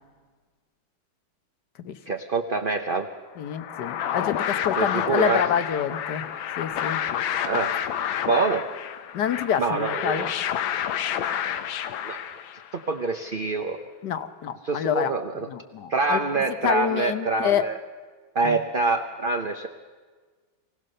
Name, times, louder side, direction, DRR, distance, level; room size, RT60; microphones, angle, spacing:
voice 1, 2.1-3.1 4.8-5.4 7.4-7.8 8.2-8.7 9.6-10.2 12.0-12.2 12.7-13.9 14.6-15.5 15.9-17.8 18.3-19.7, right 3 dB, 45° right, 5 dB, 0.7 m, -25 dB
sound 1, 3.4-12.8, left 9 dB, 85° left, 1.6 m, -29 dB
voice 2, 3.4-6.2 6.6-7.0 9.1-10.3 14.0-15.2 15.4-17.6 18.4-18.6, left 8 dB, 65° left, 11 dB, 1.5 m, -27 dB
24.5 x 17.0 x 6.7 m, 1.5 s
omnidirectional pair, 2.1 m